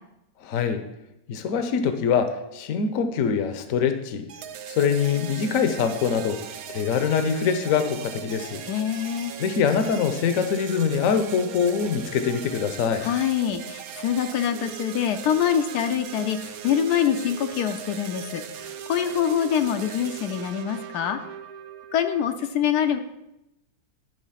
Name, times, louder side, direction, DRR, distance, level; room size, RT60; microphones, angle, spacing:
voice 1, 0.4-0.8 1.3-4.3 4.7-6.4 6.7-8.6 9.4-13.1, left 6 dB, 65° left, 8 dB, 1.1 m, -24 dB
sound 1, 4.3-22.3, right 9 dB, 70° right, 1.0 m, -39 dB
voice 2, 8.7-9.3 13.0-21.2 21.9-23.0, left 9 dB, 80° left, 7 dB, 1.2 m, -25 dB
11.5 x 3.9 x 5.7 m, 0.89 s
omnidirectional pair, 1.7 m